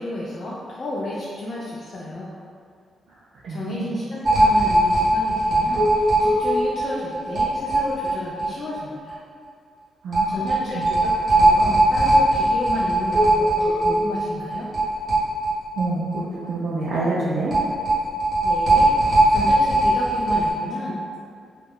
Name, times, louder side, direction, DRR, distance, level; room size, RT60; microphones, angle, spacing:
voice 1, 0.0-2.3 3.5-9.2 10.3-14.7 18.4-21.0, left 1 dB, 40° left, -7 dB, 0.3 m, -32 dB
voice 2, 3.4-3.9 10.0-10.3 10.7-10.8 15.8-17.5, right 2 dB, 80° right, -7 dB, 0.3 m, -26 dB
sound 1, 4.2-8.5 8.8-8.9 9.1-9.2 10.1-15.9 16.2-16.3 17.5-20.5, right 1 dB, 35° right, 0.9 m, -19 dB
2.1 x 2.0 x 3.5 m, 2.2 s
wide cardioid pair, 165°, 0 cm